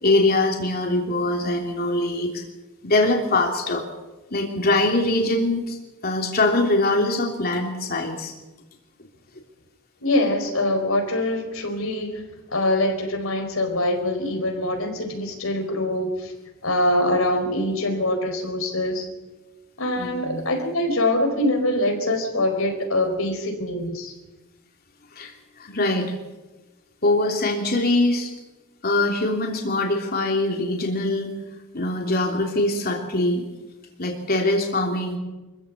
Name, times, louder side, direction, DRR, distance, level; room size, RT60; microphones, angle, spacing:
voice 1, 0.0-2.4 2.8-3.8 4.3-5.8 6.0-8.3 20.0-20.4 25.1-25.3 25.6-26.1 27.0-28.3 28.8-31.3 31.7-33.4 34.0-35.2, left 2 dB, 50° left, 1 dB, 3.2 m, -22 dB
voice 2, 10.0-12.2 12.5-16.3 16.6-19.1 19.8-24.1, left 1 dB, 90° left, 4 dB, 4.7 m, -24 dB
25.0 x 15.5 x 8.4 m, 1.1 s
head